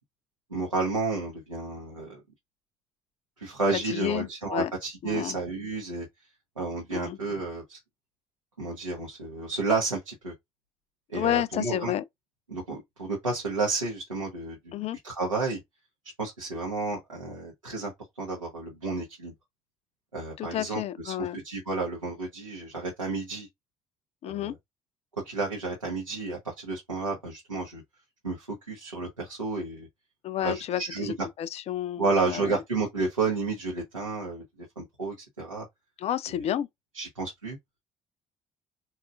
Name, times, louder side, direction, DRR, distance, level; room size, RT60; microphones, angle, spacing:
voice 1, 0.5-2.2 3.4-6.1 6.6-7.8 8.6-10.3 11.1-12.0 12.5-14.7 15.0-15.6 16.2-17.9 18.2-19.3 20.1-23.5 24.3-24.5 25.2-27.8 28.2-29.9 30.4-31.3 32.0-34.4 34.8-35.6 36.9-37.6, right 3 dB, 90° right, 0.7 m, -31 dB
voice 2, 3.9-4.7 5.0-5.4 6.9-7.2 11.1-12.0 14.7-15.0 20.4-21.4 24.2-24.5 30.2-32.6 36.0-36.7, left 11 dB, 40° left, 0.4 m, -31 dB
4.1 x 2.3 x 2.3 m
figure-of-eight pair, 50°, 16 cm